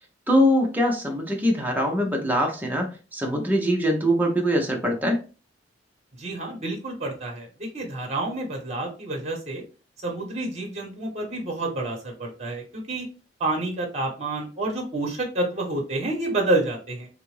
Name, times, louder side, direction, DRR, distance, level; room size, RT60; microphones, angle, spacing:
voice 1, 0.3-5.2, equal, 10° right, 0.7 m, -23 dB
voice 2, 6.2-9.6 10.0-13.0 13.4-17.1, right 2 dB, 35° right, 1.1 m, -29 dB
3.5 x 2.5 x 3.1 m
head